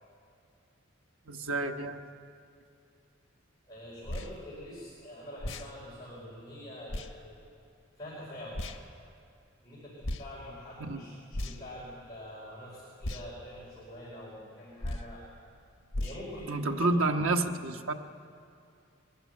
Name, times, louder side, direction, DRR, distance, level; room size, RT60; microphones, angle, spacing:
voice 1, 1.3-2.0 10.8-11.0 16.5-17.9, right 2 dB, 85° right, 5 dB, 1.2 m, -29 dB
voice 2, 3.7-7.4 8.0-8.7 9.6-15.2 16.0-17.2, equal, 20° left, -8 dB, 4.9 m, -45 dB
sound 1, 4.0-4.3 5.4-5.7 6.9-7.1 8.5-8.8 10.0-10.3 11.3-11.7 13.0-13.3 14.8-15.1 15.9-16.2, left 1 dB, 75° left, 1.2 m, -35 dB
22.5 x 14.0 x 9.5 m, 2.5 s
head